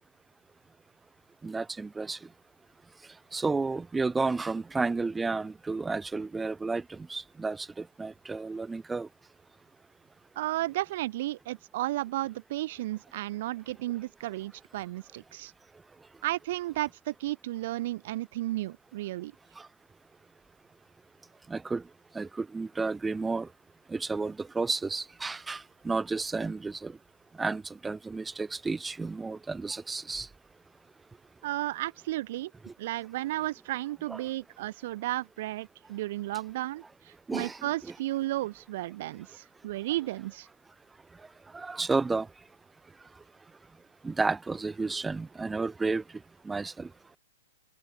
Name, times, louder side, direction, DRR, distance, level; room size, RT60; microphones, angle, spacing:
voice 1, 1.4-2.2 3.3-9.1 19.6-19.7 21.5-21.8 22.1-23.5 23.9-27.0 27.4-30.3 32.6-32.7 34.1-34.2 37.3-37.7 41.5-42.3 44.0-46.0 46.4-46.9, right 3 dB, 5° right, 1.8 m, -32 dB
voice 2, 10.3-15.5 16.2-19.3 31.4-32.5 32.8-40.5, right 16 dB, 45° right, 1.5 m, -33 dB
hypercardioid pair, 160°, 0 cm